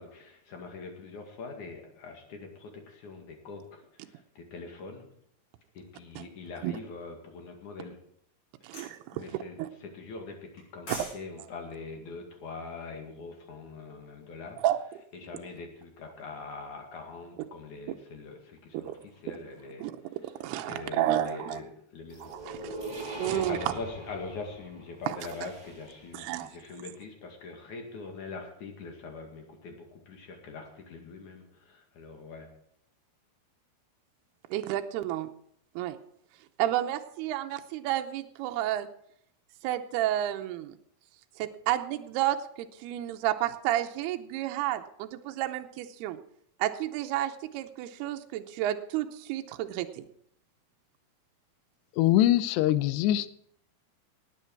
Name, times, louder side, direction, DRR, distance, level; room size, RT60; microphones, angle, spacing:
voice 1, 0.0-5.1 5.7-8.0 8.7-14.6 15.1-20.2 20.6-22.4 23.3-32.5, left 4 dB, 55° left, 3 dB, 3.2 m, -43 dB
voice 2, 8.6-9.2 9.6-9.7 10.9-11.0 14.6-14.8 18.9-19.0 19.8-19.9 20.4-21.6 22.3-23.6 26.1-26.5 34.5-35.3 35.8-36.0 36.6-38.9 39.6-40.8 41.4-46.2 46.6-50.1, right 13 dB, 80° right, 6 dB, 2.7 m, -31 dB
sound 1, 8.7-9.0 10.6-11.2 11.5-11.7, left 1 dB, 30° left, 5.1 m, -40 dB
sound 2, 22.1-26.1, right 1 dB, 20° right, 1.2 m, -41 dB
voice 3, 52.0-53.3, left 13 dB, 90° left, 15 dB, 2.8 m, -23 dB
18.5 x 9.2 x 4.6 m, 0.70 s
omnidirectional pair, 4.7 m